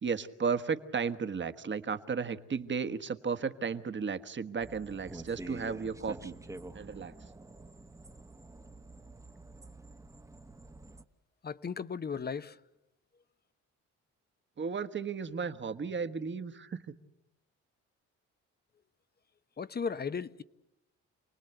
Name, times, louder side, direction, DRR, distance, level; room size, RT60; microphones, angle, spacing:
voice 1, 0.0-6.4 6.7-7.1 14.6-16.8, right 5 dB, 40° right, 1.4 m, -34 dB
sound 1, 4.6-11.0, right 2 dB, 10° right, 1.1 m, -48 dB
voice 2, 11.4-12.6 19.6-20.4, left 6 dB, 30° left, 0.9 m, -36 dB
28.5 x 19.5 x 8.0 m
cardioid pair, 90°, 30 cm